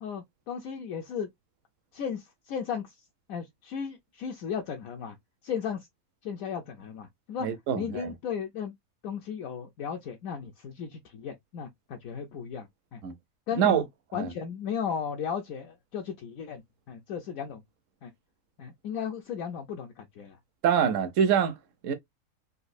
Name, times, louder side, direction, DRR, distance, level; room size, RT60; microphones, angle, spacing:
voice 1, 0.0-1.3 1.9-2.9 3.3-5.2 5.4-5.9 6.2-7.5 7.7-8.7 9.0-13.0 13.5-13.9 14.1-16.6 16.9-17.6 18.0-18.1 18.6-20.4, left 7 dB, 70° left, 1.0 m, -35 dB
voice 2, 7.4-8.1 13.0-13.1 13.6-13.8 14.1-14.3 20.6-21.6 21.8-21.9, right 8 dB, 70° right, 0.9 m, -25 dB
4.0 x 2.3 x 2.5 m
omnidirectional pair, 1.6 m